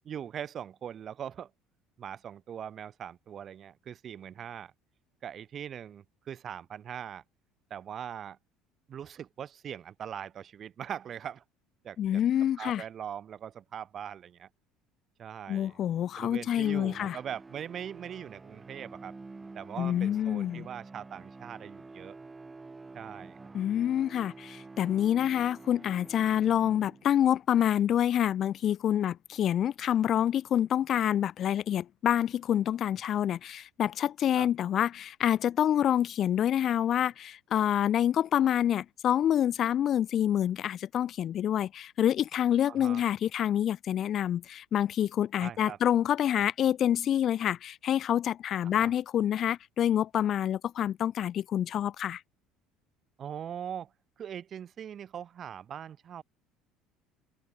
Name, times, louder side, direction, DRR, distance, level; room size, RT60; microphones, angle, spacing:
voice 1, 0.0-1.5 2.0-4.7 5.2-7.2 7.7-8.4 8.9-11.4 11.8-12.2 12.6-14.5 15.2-15.8 16.2-19.1 19.5-22.2 22.9-23.5 34.3-34.5 42.7-43.0 45.4-45.8 48.6-48.9 53.2-53.9 54.2-56.2, right 9 dB, 45° right, 6.7 m, -41 dB
voice 2, 12.0-12.8 15.5-17.2 19.8-20.7 23.5-52.2, left 10 dB, 50° left, 0.6 m, -27 dB
sound 1, 16.6-27.3, right 3 dB, 20° right, 2.2 m, -48 dB
hypercardioid pair, 75°, 0 cm